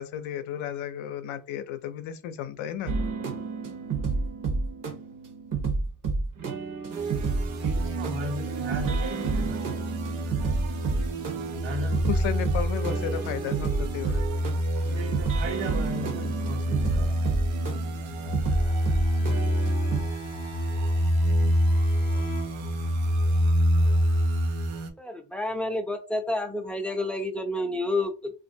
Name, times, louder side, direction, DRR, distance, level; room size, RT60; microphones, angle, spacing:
voice 1, 0.0-2.9 12.1-14.2, left 10 dB, 85° left, 0.6 m, -33 dB
sound 1, 2.9-20.0, right 4 dB, 45° right, 0.9 m, -30 dB
sound 2, 6.9-24.9, equal, 90° right, 0.9 m, -27 dB
voice 2, 7.6-10.2 11.6-12.0 14.9-17.2, right 1 dB, 70° right, 1.1 m, -37 dB
Bowed string instrument, 18.5-23.1, right 6 dB, 40° left, 0.7 m, -43 dB
voice 3, 25.0-28.3, left 1 dB, 5° left, 0.5 m, -29 dB
2.9 x 2.5 x 2.6 m
cardioid pair, 105°, 46 cm